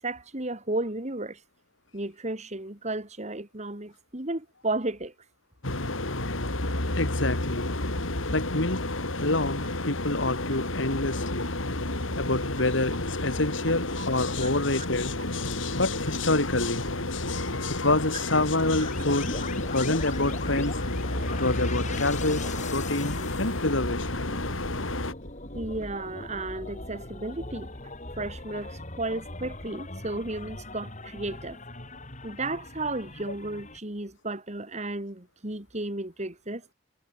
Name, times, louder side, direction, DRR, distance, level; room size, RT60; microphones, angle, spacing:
voice 1, 0.0-1.4 1.9-5.1 13.9-14.0 14.4-14.9 25.5-27.7 28.2-31.6 32.2-36.7, right 2 dB, 35° right, 2.5 m, -33 dB
sound 1, 5.6-25.1, left 2 dB, 90° left, 3.9 m, -31 dB
voice 2, 7.0-7.8 8.3-8.8 9.1-11.5 12.2-20.8 21.4-22.4 22.7-24.2, left 2 dB, 70° left, 3.3 m, -28 dB
sound 2, 18.8-33.8, left 2 dB, 40° left, 7.0 m, -40 dB
head